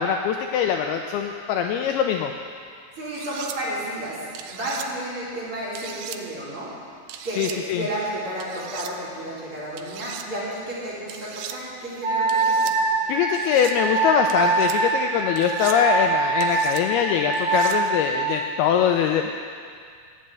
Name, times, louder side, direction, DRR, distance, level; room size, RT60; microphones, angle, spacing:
voice 1, 0.0-2.3 7.4-7.9 13.1-19.3, left 8 dB, 80° left, 4 dB, 2.3 m, -23 dB
voice 2, 3.0-4.2 4.5-6.7 7.2-12.7, right 1 dB, 30° right, -10 dB, 4.8 m, -32 dB
sound 1, 3.1-3.6 4.3-4.9 5.8-6.2 7.1-7.6 8.4-8.9 9.8-10.3 11.1-11.6 12.3-12.8 13.3-13.8 14.3-14.8 15.4-15.8 16.4-16.8 17.3-17.8, right 10 dB, 90° right, 2.0 m, -38 dB
Wind instrument woodwind instrument, 12.0-18.4, right 3 dB, 50° right, 5.8 m, -24 dB
13.0 x 8.4 x 8.8 m, 2.1 s
omnidirectional pair, 4.9 m